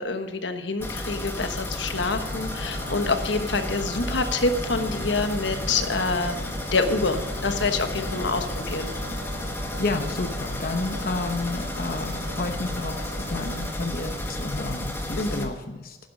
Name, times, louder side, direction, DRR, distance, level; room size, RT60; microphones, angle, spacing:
voice 1, 0.0-6.4 6.7-8.9 15.2-15.5, left 3 dB, 85° left, 7 dB, 1.2 m, -26 dB
sound 1, 0.8-15.5, left 1 dB, 15° left, 1.5 m, -32 dB
sound 2, 2.2-13.7, equal, 80° right, 2.3 m, -40 dB
voice 2, 9.8-16.0, left 3 dB, 55° left, 6 dB, 0.9 m, -31 dB
12.0 x 10.5 x 5.3 m, 1.2 s
head